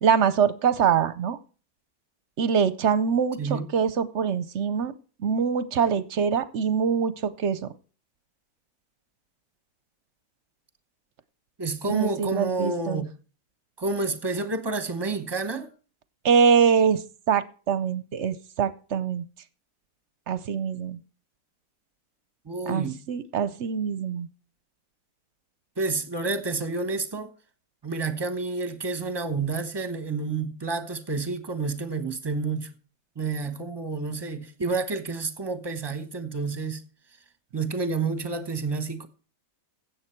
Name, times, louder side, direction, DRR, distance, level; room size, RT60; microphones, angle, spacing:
voice 1, 0.0-1.4 2.4-4.9 5.2-7.7 11.9-13.0 16.2-19.2 20.3-21.0 22.7-24.3, right 7 dB, 60° right, 0.8 m, -24 dB
voice 2, 11.6-13.1 13.8-15.7 22.5-23.0 25.8-27.3 27.8-32.7 33.2-36.8 37.5-39.1, right 3 dB, 20° right, 0.8 m, -29 dB
16.0 x 7.2 x 4.4 m
omnidirectional pair, 1.6 m